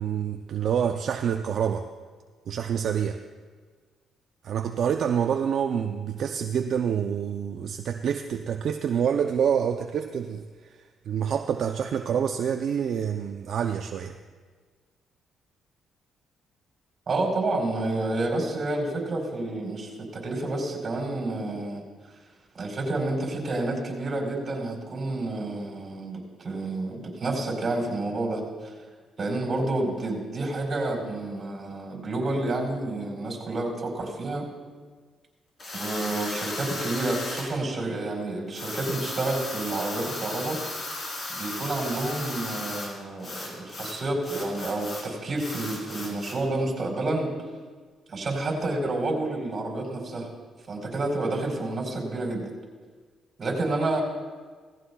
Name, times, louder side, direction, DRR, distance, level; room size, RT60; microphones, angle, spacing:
voice 1, 0.0-1.9 2.5-3.2 4.4-14.1, right 8 dB, 65° right, 6 dB, 0.5 m, -27 dB
voice 2, 17.1-21.8 22.5-28.7 29.2-34.5 35.7-40.6 41.3-47.3 48.1-50.3 50.7-52.5 53.4-54.0, right 2 dB, 40° right, 0 dB, 4.1 m, -29 dB
sound 1, 35.6-37.5 38.5-42.9 43.2-45.1 45.4-46.4, left 2 dB, 40° left, 3.6 m, -35 dB
17.0 x 15.5 x 2.3 m, 1.5 s
cardioid pair, 90°, 0 cm